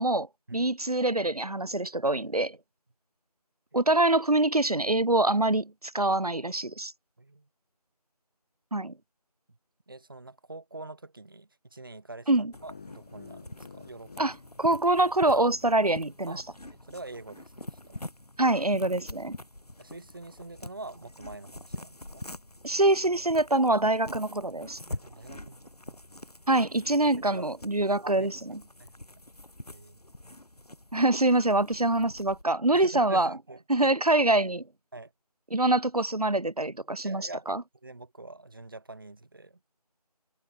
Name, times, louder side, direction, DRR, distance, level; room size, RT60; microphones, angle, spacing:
voice 1, 0.0-2.6 3.7-6.9 8.7-8.9 12.3-12.5 14.2-14.3 14.6-16.4 18.4-19.4 22.6-24.8 26.5-28.4 30.9-33.3 33.7-34.6 35.5-37.6, right 2 dB, 65° right, 1.6 m, -25 dB
voice 2, 9.9-14.3 16.3-16.4 16.7-18.0 19.8-22.3 24.9-25.6 25.9-26.0 27.0-27.5 28.0-28.3 28.8-28.9 29.7-30.0 32.7-33.6 34.9-35.1 37.0-37.5 37.8-39.6, right 2 dB, 35° right, 4.6 m, -44 dB
sound 1, 12.5-32.4, left 1 dB, 70° left, 3.7 m, -45 dB
sound 2, 12.5-15.6, left 5 dB, 10° left, 2.9 m, -51 dB
figure-of-eight pair, 170°, 21 cm